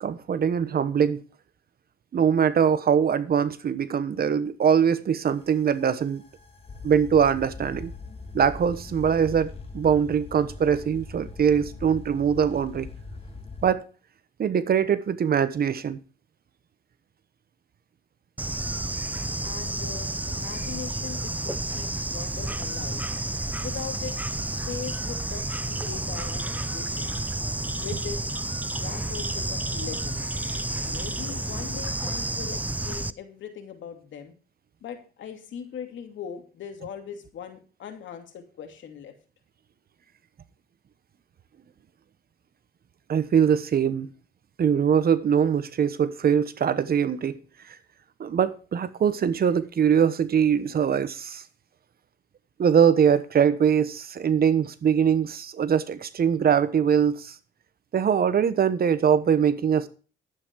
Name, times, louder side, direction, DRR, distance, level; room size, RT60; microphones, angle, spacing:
voice 1, 0.0-1.2 2.1-6.2 6.8-7.9 8.3-9.5 9.7-12.9 13.6-13.8 14.4-16.0 43.1-44.1 44.6-47.4 48.2-51.4 52.6-57.3 57.9-59.9, right 7 dB, 50° right, 1.1 m, -22 dB
sound 1, 5.3-13.7, left 3 dB, 30° left, 2.1 m, -41 dB
Bird / Insect, 18.4-33.1, right 2 dB, 10° right, 0.6 m, -30 dB
voice 2, 19.4-23.0 23.6-24.1 24.7-27.3 27.8-28.2 28.7-30.4 30.8-34.3 34.8-39.1, left 8 dB, 70° left, 2.7 m, -40 dB
11.5 x 8.8 x 4.6 m
cardioid pair, 90°, 20 cm